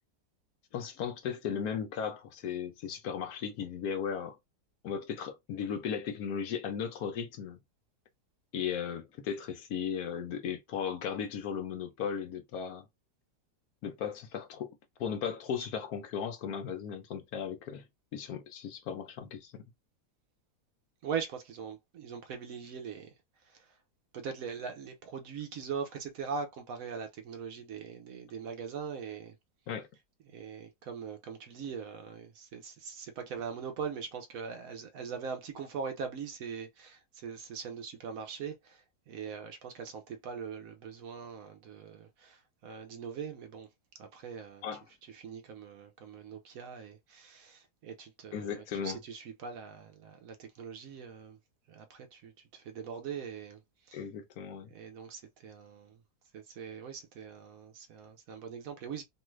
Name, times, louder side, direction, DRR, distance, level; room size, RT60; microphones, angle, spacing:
voice 1, 0.7-4.4 4.8-7.6 8.5-12.9 13.8-14.7 15.0-17.8 18.1-19.6 29.7-29.9 44.6-44.8 48.3-49.0 53.9-54.7, left 7 dB, 70° left, 1.0 m, -36 dB
voice 2, 21.0-23.1 23.4-23.7 24.1-29.3 30.3-43.7 44.0-44.6 45.1-51.4 51.7-53.6 53.9-54.0 54.7-56.0 56.3-59.0, right 6 dB, 70° right, 0.9 m, -41 dB
2.9 x 2.4 x 3.1 m
omnidirectional pair, 1.7 m